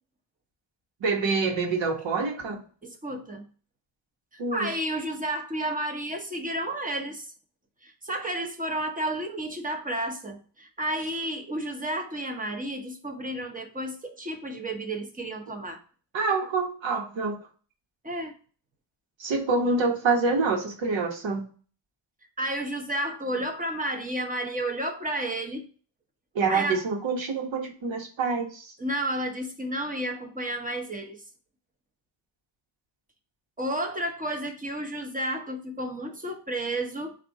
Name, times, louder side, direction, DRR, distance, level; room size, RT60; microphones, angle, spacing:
voice 1, 1.0-2.6 4.4-4.7 16.1-17.4 19.2-21.5 26.3-28.7, right 4 dB, 90° right, 1 dB, 1.3 m, -26 dB
voice 2, 2.8-3.4 4.3-7.3 7.8-15.8 18.0-18.3 22.4-25.7 26.5-26.8 28.8-31.2 33.6-37.1, right 1 dB, 20° right, 4 dB, 0.8 m, -31 dB
4.0 x 2.7 x 4.6 m, 0.39 s
wide cardioid pair, 95°, 44 cm